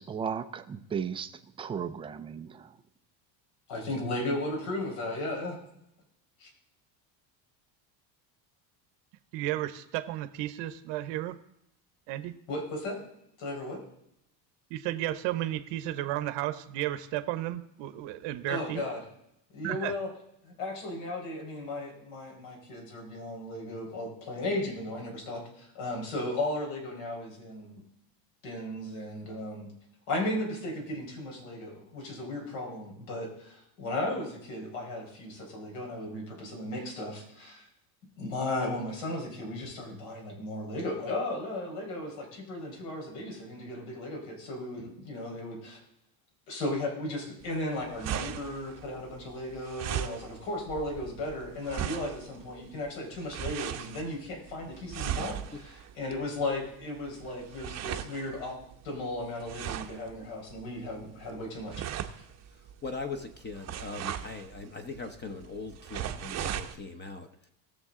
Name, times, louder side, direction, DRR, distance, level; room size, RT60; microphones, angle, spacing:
voice 1, 0.0-1.3 1.6-2.7, right 7 dB, 15° right, 0.3 m, -35 dB
voice 2, 3.7-5.6 12.5-13.0 13.4-13.8 18.5-19.0 19.5-20.1 20.4-27.8 28.4-29.7 30.1-37.7 38.2-45.8 46.5-58.6 58.8-61.7, left 1 dB, 75° left, 4.6 m, -35 dB
voice 3, 9.3-11.4 12.1-12.3 14.7-18.8 19.6-19.9, right 14 dB, 65° right, 0.9 m, -33 dB
sound 1, 47.4-66.8, right 10 dB, 35° right, 0.7 m, -39 dB
voice 4, 62.5-67.5, left 4 dB, 20° left, 0.9 m, -40 dB
19.0 x 6.8 x 3.7 m
cardioid pair, 140°, 47 cm